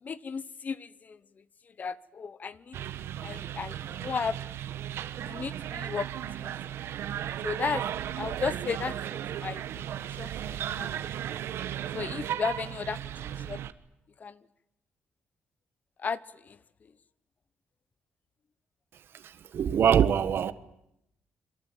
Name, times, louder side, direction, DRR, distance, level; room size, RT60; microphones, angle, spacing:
voice 1, 0.0-1.2 1.8-2.8 3.2-4.4 5.2-6.1 6.4-6.5 7.4-7.8 8.2-9.9 10.2-11.0 11.9-13.1 13.5-13.6 14.2-14.4 16.0-16.6, left 5 dB, 40° left, 1.0 m, -34 dB
sound 1, 2.7-13.7, right 10 dB, 80° right, 1.3 m, -35 dB
voice 2, 19.1-20.5, right 8 dB, 60° right, 1.5 m, -24 dB
27.5 x 23.5 x 9.0 m
cardioid pair, 120°, 4 cm